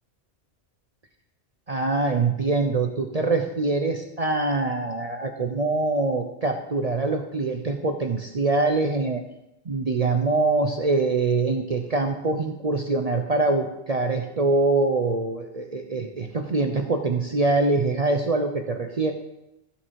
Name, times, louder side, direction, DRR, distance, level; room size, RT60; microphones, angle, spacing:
voice 1, 1.7-9.2 9.6-19.1, right 3 dB, 40° right, 4 dB, 0.7 m, -24 dB
14.5 x 5.7 x 4.6 m, 0.89 s
omnidirectional pair, 1.1 m